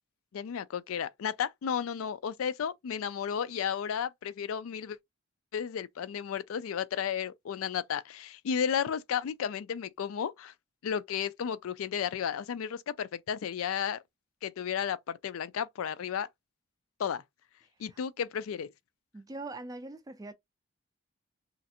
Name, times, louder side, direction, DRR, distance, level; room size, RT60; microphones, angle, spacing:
voice 1, 0.3-5.0 5.5-10.5 10.8-14.0 14.4-16.3 17.0-17.2 17.8-18.7, left 8 dB, 80° left, 0.4 m, -33 dB
voice 2, 19.1-20.3, right 2 dB, 15° right, 0.3 m, -41 dB
3.1 x 2.5 x 2.8 m
head